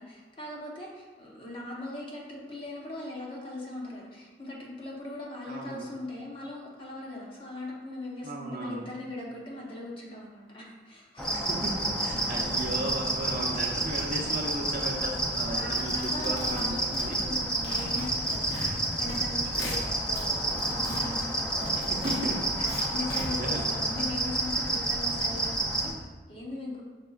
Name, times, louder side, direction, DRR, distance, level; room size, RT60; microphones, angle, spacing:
voice 1, 0.0-11.4 15.4-22.2 22.6-26.8, left 1 dB, 30° left, -3 dB, 0.8 m, -40 dB
voice 2, 5.5-5.9 8.2-8.8 11.3-17.2 18.7-18.8 21.7-22.4 22.7-23.6, right 1 dB, 45° right, -2 dB, 0.6 m, -36 dB
sound 1, 11.2-25.9, right 1 dB, 5° left, 0.4 m, -30 dB
sound 2, 15.8-17.4 17.6-19.2 19.5-20.3 20.6-23.2, equal, 60° left, 1.0 m, -39 dB
5.9 x 3.5 x 2.4 m, 1.3 s
head